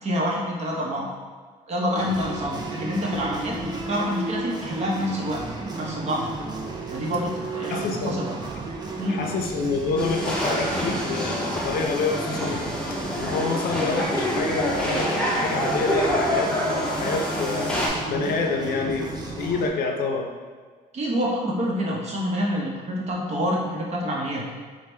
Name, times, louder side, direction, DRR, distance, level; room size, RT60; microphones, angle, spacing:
voice 1, 0.0-1.1 1.7-5.4 5.7-6.3 6.9-8.3 9.0-9.3 20.9-24.4, equal, 40° right, -3 dB, 0.9 m, -27 dB
sound 1, 2.0-19.7, right 3 dB, 25° right, 0.5 m, -34 dB
voice 2, 7.7-8.2 9.1-12.6 13.1-20.3, left 4 dB, 65° left, 2 dB, 0.5 m, -28 dB
sound 2, 10.0-17.9, left 1 dB, 5° left, 0.7 m, -26 dB
4.6 x 2.2 x 3.3 m, 1.5 s
cardioid pair, 110°, 17 cm